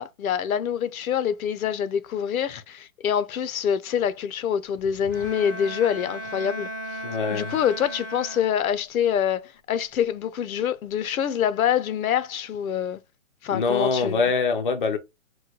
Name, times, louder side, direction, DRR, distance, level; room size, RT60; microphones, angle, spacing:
voice 1, 0.0-6.7 7.3-13.0 13.4-14.2, left 9 dB, 90° left, 0.6 m, -25 dB
Bowed string instrument, 5.1-8.9, equal, 15° right, 0.6 m, -36 dB
voice 2, 7.0-7.5 13.5-15.0, left 4 dB, 40° left, 0.4 m, -24 dB
3.1 x 2.2 x 3.8 m
hypercardioid pair, 170°, 41 cm